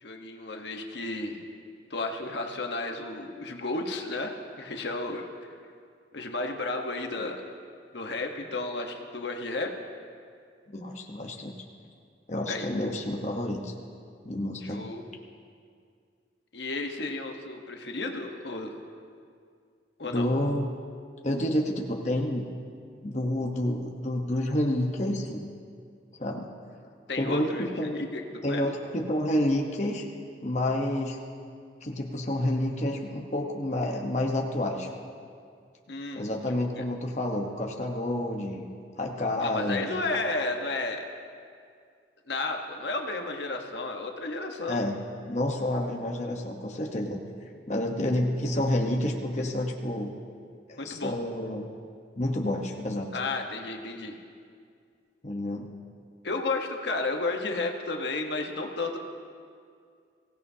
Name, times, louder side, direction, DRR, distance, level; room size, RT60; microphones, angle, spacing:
voice 1, 0.0-1.4 1.9-5.2 6.1-7.4 7.9-9.7 12.5-12.7 14.6-15.0 16.5-18.8 20.0-20.3 27.1-28.2 28.5-28.7 35.9-36.2 39.4-41.0 42.3-44.8 50.8-51.1 53.1-54.1 56.2-59.0, left 3 dB, 75° left, 3 dB, 1.2 m, -32 dB
voice 2, 10.7-11.5 12.3-13.7 14.2-14.8 20.1-20.8 21.2-22.5 23.0-25.5 26.2-26.5 27.2-28.0 28.4-30.0 30.4-31.2 31.8-34.9 36.1-38.7 39.0-39.9 44.7-45.0 45.3-47.2 47.7-50.1 50.7-51.7 52.2-53.1 55.2-55.7, left 1 dB, 40° left, 0 dB, 1.0 m, -29 dB
23.0 x 16.5 x 2.8 m, 2.2 s
head